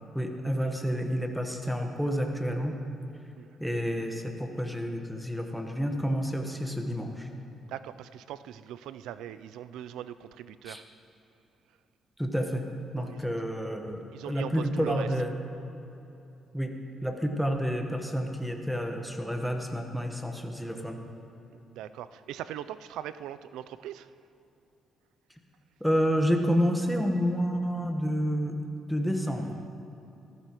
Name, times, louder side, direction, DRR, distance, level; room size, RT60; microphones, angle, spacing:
voice 1, 0.1-2.8 3.6-7.3 10.6-10.8 12.2-12.6 12.9-15.3 16.5-16.7 17.0-21.0 25.8-28.6 28.9-29.5, equal, ahead, 3 dB, 1.2 m, -29 dB
voice 2, 7.7-10.8 13.0-13.2 14.1-15.1 21.7-24.1, right 11 dB, 90° right, 13 dB, 0.4 m, -40 dB
14.5 x 14.0 x 3.0 m, 2.9 s
cardioid pair, 90°, 0 cm